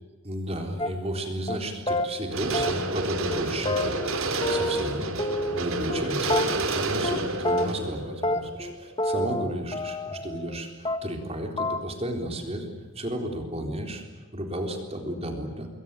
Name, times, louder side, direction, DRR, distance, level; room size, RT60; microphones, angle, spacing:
voice 1, 0.2-4.0 4.5-6.5 6.8-12.7 12.9-15.7, right 1 dB, 30° right, 3 dB, 3.9 m, -33 dB
sound 1, 0.8-1.2 1.5-1.6 1.9-2.1 2.5-3.0 3.3-3.4 3.7-4.9 5.2-6.0 6.3-6.8 7.0-7.2 7.4-7.9 8.2-10.6 10.9-11.3 11.6-11.8, left 1 dB, 25° left, 1.5 m, -28 dB
sound 2, 2.3-9.4 9.8-9.9, right 2 dB, 75° right, 3.7 m, -30 dB
27.5 x 22.0 x 9.1 m, 1.3 s
head